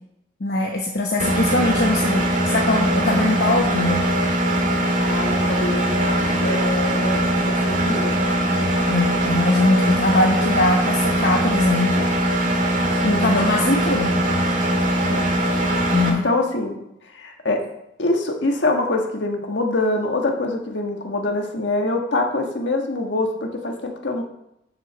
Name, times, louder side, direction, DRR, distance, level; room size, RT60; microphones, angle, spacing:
voice 1, 0.4-4.1 8.9-12.1 13.0-14.1 15.9-16.2, left 2 dB, 65° left, 0 dB, 1.0 m, -21 dB
Engine, 1.2-16.1, right 1 dB, 45° right, 1.7 m, -21 dB
voice 2, 5.1-6.1 6.4-8.1 12.8-13.3 15.0-15.3 16.1-16.8 17.1-17.6 18.0-24.2, left 2 dB, 90° left, 3 dB, 1.4 m, -25 dB
7.4 x 6.4 x 6.8 m, 0.80 s
head